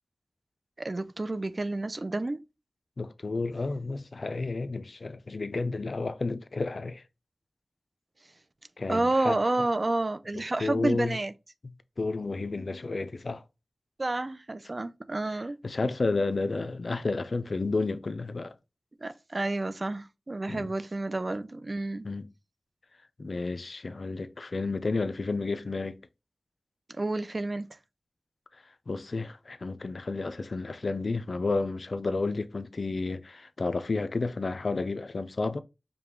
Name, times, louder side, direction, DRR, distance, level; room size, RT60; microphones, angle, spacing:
voice 1, 0.8-2.4 8.9-11.3 14.0-15.6 19.0-22.1 27.0-27.7, right 2 dB, 50° right, 0.4 m, -30 dB
voice 2, 3.0-7.0 8.8-9.4 10.3-11.2 12.0-13.4 15.6-18.5 20.5-20.7 22.0-22.2 23.2-26.0 28.9-35.6, left 3 dB, 75° left, 0.4 m, -31 dB
5.1 x 2.2 x 3.0 m
wide cardioid pair, 45°, 0 cm